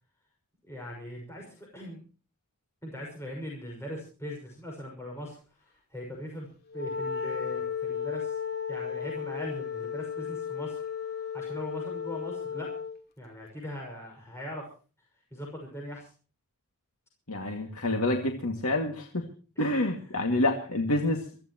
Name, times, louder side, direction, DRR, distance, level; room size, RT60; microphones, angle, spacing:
voice 1, 0.6-2.0 2.8-5.4 5.9-6.5 6.7-8.4 8.7-10.8 11.2-12.7 13.2-14.7 15.3-16.1 17.4-17.6 19.6-19.7 20.1-20.3, equal, 10° left, -1 dB, 6.2 m, -40 dB
Wind instrument woodwind instrument, 6.7-13.0, left 7 dB, 45° left, 2.7 m, -34 dB
voice 2, 17.3-19.2 19.6-21.4, left 1 dB, 75° left, 3 dB, 2.3 m, -28 dB
24.0 x 16.0 x 3.1 m, 0.37 s
head